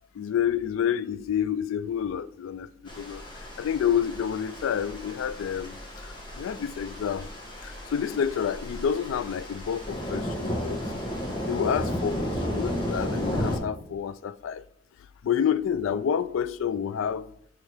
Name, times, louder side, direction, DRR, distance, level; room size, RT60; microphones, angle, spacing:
voice 1, 0.1-2.7 2.9-3.2 3.6-5.8 6.4-7.3 7.6-10.8 11.5-14.6 15.2-17.3, left 8 dB, 90° left, 0.3 m, -28 dB
sound 1, 2.9-13.6, equal, 25° left, 1.2 m, -33 dB
6.1 x 3.2 x 4.8 m
head